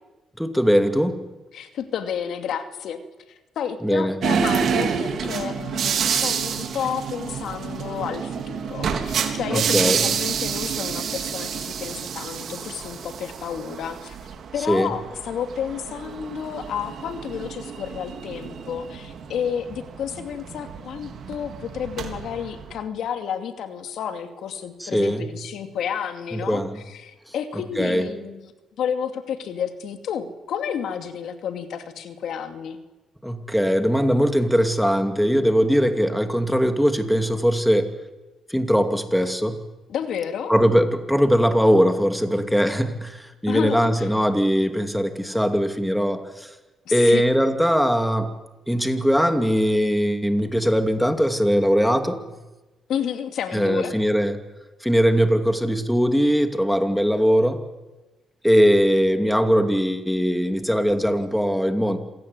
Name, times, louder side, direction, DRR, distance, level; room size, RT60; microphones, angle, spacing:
voice 1, 0.4-1.2 3.8-4.2 9.5-10.1 14.7-14.9 24.8-25.3 26.3-26.8 27.8-28.1 33.2-37.9 38.5-39.6 40.5-46.5 46.9-48.3 48.7-52.2 53.5-54.4 54.8-57.6 58.4-62.0, equal, ahead, 7 dB, 2.5 m, -20 dB
voice 2, 1.5-3.0 3.6-14.2 14.5-28.5 28.8-32.8 39.9-40.5 43.5-44.1 46.9-47.2 52.9-53.9, left 8 dB, 75° left, 7 dB, 2.5 m, -31 dB
sound 1, 4.2-22.8, right 7 dB, 60° right, 3.6 m, -28 dB
27.0 x 17.5 x 9.7 m, 1.1 s
cardioid pair, 90°, 0 cm